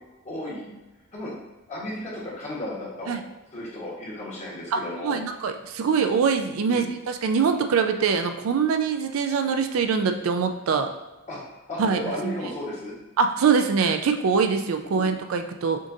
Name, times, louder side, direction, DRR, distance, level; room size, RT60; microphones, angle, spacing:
voice 1, 0.2-0.7 1.1-1.3 1.7-3.1 3.5-5.2 6.6-6.9 11.3-11.4 11.7-12.9 14.9-15.1, left 1 dB, 35° left, -6 dB, 1.4 m, -34 dB
voice 2, 4.7-10.9 11.8-12.3 13.2-15.8, right 5 dB, 70° right, 7 dB, 0.4 m, -23 dB
6.3 x 2.5 x 2.7 m, 1.1 s
head